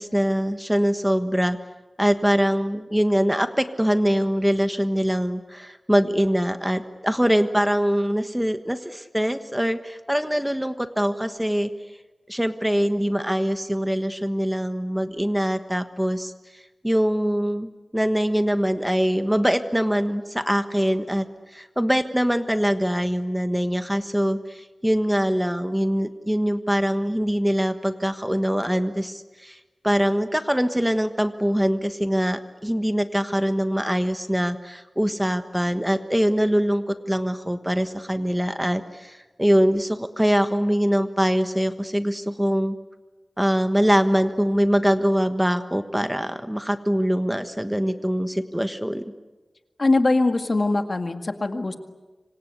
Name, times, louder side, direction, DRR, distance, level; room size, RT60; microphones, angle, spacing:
voice 1, 0.0-1.6 2.0-11.7 12.3-16.3 16.8-21.2 21.5-29.6 29.8-42.8 43.4-49.0, equal, 5° right, 9 dB, 1.3 m, -23 dB
voice 2, 49.8-51.8, left 2 dB, 50° left, 7 dB, 2.1 m, -22 dB
26.0 x 26.0 x 8.4 m, 1.2 s
wide cardioid pair, 75°, 0 cm